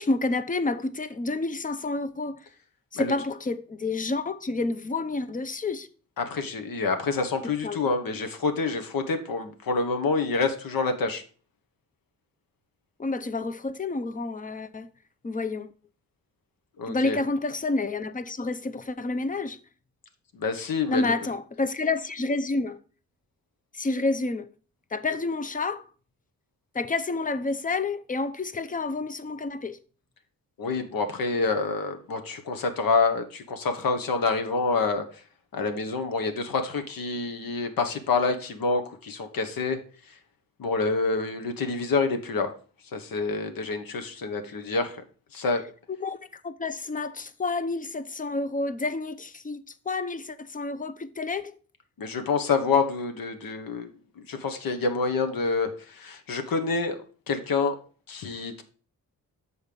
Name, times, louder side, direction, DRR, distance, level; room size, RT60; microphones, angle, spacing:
voice 1, 0.0-2.4 2.9-5.9 7.6-7.8 13.0-14.9 15.2-15.7 16.9-19.6 20.9-22.8 23.7-24.5 24.9-25.8 26.7-29.8 45.9-51.5, left 3 dB, 25° left, 0.6 m, -29 dB
voice 2, 6.2-11.2 16.8-17.2 20.3-21.3 30.6-35.0 35.5-39.8 40.6-42.5 42.9-45.0 45.3-45.6 52.0-53.9 54.2-57.7 58.1-58.6, left 4 dB, 75° left, 1.2 m, -27 dB
6.7 x 4.6 x 5.2 m
cardioid pair, 65°, 35 cm